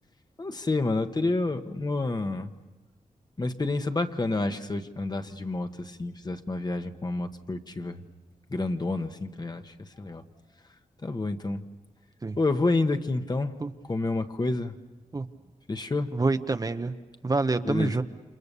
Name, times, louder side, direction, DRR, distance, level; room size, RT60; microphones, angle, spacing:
voice 1, 0.4-2.5 3.4-8.0 8.5-10.2 11.0-11.6 12.4-13.5 13.9-14.8 15.7-16.2 17.6-17.9, left 2 dB, 30° left, 7 dB, 1.4 m, -29 dB
voice 2, 16.1-16.9 17.2-18.0, right 3 dB, 30° right, 8 dB, 0.9 m, -26 dB
29.0 x 27.5 x 6.9 m, 1.2 s
wide cardioid pair, 90°, 13 cm